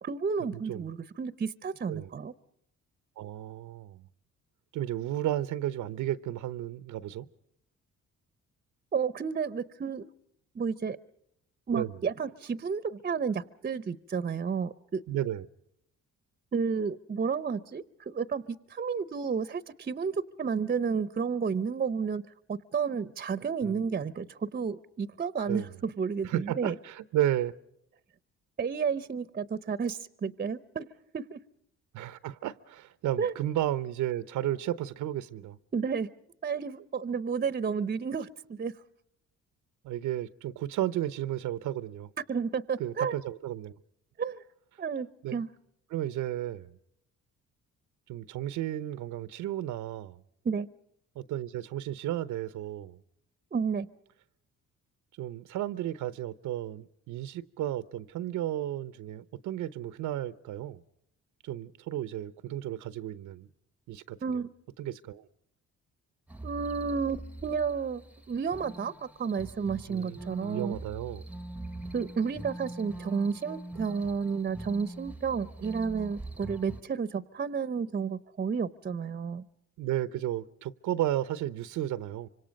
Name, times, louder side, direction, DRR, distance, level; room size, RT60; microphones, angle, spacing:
voice 1, 0.0-2.3 8.9-10.1 10.5-11.0 11.7-15.0 16.5-26.7 28.6-30.9 31.1-31.4 33.2-33.3 35.7-36.1 36.4-38.7 42.3-43.1 44.2-44.4 44.8-45.5 50.4-50.7 53.5-53.9 64.2-64.5 66.4-68.0 68.3-70.8 71.9-79.5, right 6 dB, 30° right, 0.8 m, -31 dB
voice 2, 0.5-0.9 1.9-2.1 3.2-4.0 4.7-7.3 11.7-12.0 15.1-15.4 23.6-23.8 25.5-25.7 26.2-27.5 31.9-35.6 39.8-42.1 42.8-43.8 45.2-45.4 45.9-46.7 48.1-50.2 51.2-53.0 55.2-60.8 61.4-63.5 63.9-64.4 64.8-65.3 69.9-71.2 79.8-82.3, right 13 dB, 85° right, 0.8 m, -33 dB
sound 1, 66.3-76.8, right 2 dB, 5° right, 0.9 m, -43 dB
25.5 x 25.5 x 5.2 m
cardioid pair, 90°, 30 cm